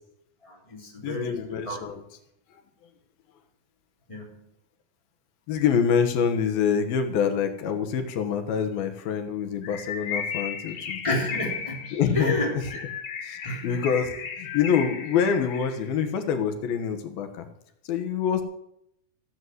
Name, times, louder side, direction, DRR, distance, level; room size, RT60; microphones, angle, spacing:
voice 1, 0.4-1.8 4.1-4.4 11.0-11.8 12.1-12.8 13.4-13.8, left 1 dB, 10° left, -1 dB, 3.2 m, -30 dB
voice 2, 1.0-2.0 5.5-11.2 11.9-12.5 13.2-17.5 17.9-18.4, left 7 dB, 90° left, 6 dB, 3.1 m, -26 dB
Bird, 9.6-15.9, left 6 dB, 65° left, 2.8 m, -35 dB
15.0 x 8.3 x 7.8 m, 0.77 s
omnidirectional pair, 4.1 m